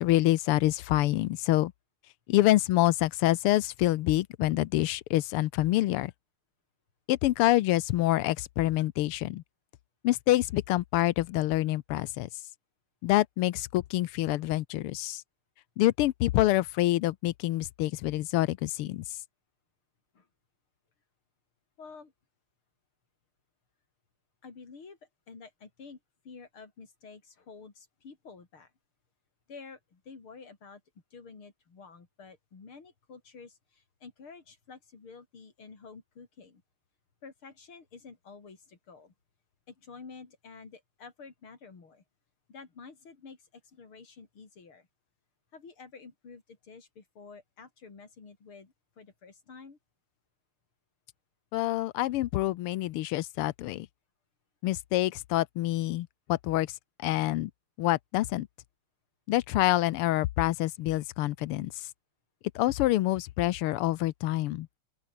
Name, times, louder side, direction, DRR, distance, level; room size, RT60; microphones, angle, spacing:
voice 1, 0.0-1.7 2.3-6.1 7.1-9.4 10.0-12.3 13.0-15.2 15.8-19.1 51.5-53.9 54.6-57.5 57.8-58.5 59.3-61.9 62.6-64.7, left 16 dB, 90° left, 1.7 m, -26 dB
voice 2, 21.8-22.1 24.4-25.0 25.3-26.0 26.2-28.7 29.5-30.8 31.1-36.6 37.2-39.1 39.7-42.0 42.5-44.9 45.5-49.8, left 5 dB, 70° left, 4.5 m, -50 dB
open air
omnidirectional pair, 2.4 m